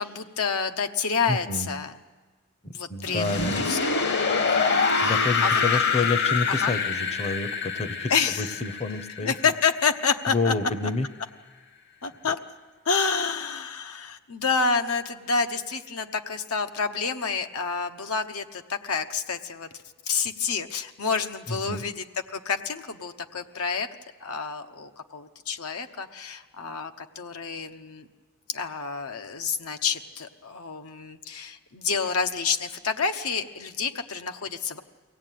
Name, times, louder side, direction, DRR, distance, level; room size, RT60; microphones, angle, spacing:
voice 1, 0.0-2.0 2.7-6.1 6.5-6.8 8.1-8.6 9.2-10.7 12.0-12.4 12.8-19.7 20.1-23.9 24.2-28.1 28.5-34.8, left 5 dB, 75° left, 7 dB, 1.0 m, -29 dB
voice 2, 1.3-1.7 2.6-3.7 5.0-9.5 10.3-11.1 12.2-12.3 21.5-21.8, left 3 dB, 30° left, 11 dB, 0.8 m, -29 dB
sound 1, 3.0-9.9, left 5 dB, 50° left, 1.2 m, -25 dB
23.5 x 17.0 x 9.2 m, 1.4 s
head